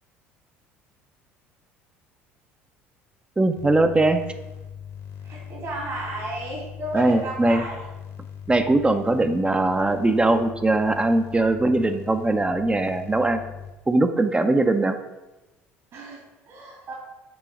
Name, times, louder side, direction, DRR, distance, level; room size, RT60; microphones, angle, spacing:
voice 1, 3.4-4.2 6.9-7.6 8.5-13.4 13.9-15.0, right 2 dB, 15° right, 8 dB, 0.5 m, -21 dB
sound 1, 3.6-13.7, left 8 dB, 65° left, 1.2 m, -40 dB
voice 2, 5.2-7.8 15.9-16.9, right 2 dB, 55° right, -4 dB, 2.3 m, -33 dB
6.1 x 3.8 x 4.9 m, 1.1 s
hypercardioid pair, 65°, 6 cm